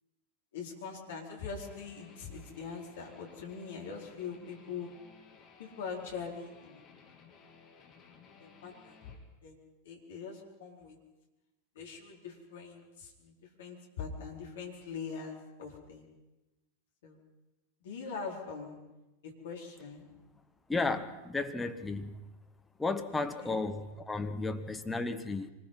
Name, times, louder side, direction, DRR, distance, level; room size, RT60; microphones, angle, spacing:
voice 1, 0.5-4.9 5.6-6.8 8.4-9.1 9.4-9.5 9.8-11.0 11.8-13.3 13.6-16.1 17.0-17.2 17.8-18.8 19.2-20.1 23.1-23.6, left 5 dB, 60° left, 0 dB, 4.3 m, -42 dB
Guitar, 1.6-9.2, left 6 dB, 30° left, 3.0 m, -58 dB
voice 2, 20.7-22.2 22.8-25.5, left 3 dB, 10° left, 6 dB, 1.4 m, -33 dB
25.0 x 20.5 x 5.7 m, 1.0 s
figure-of-eight pair, 90°, 0 cm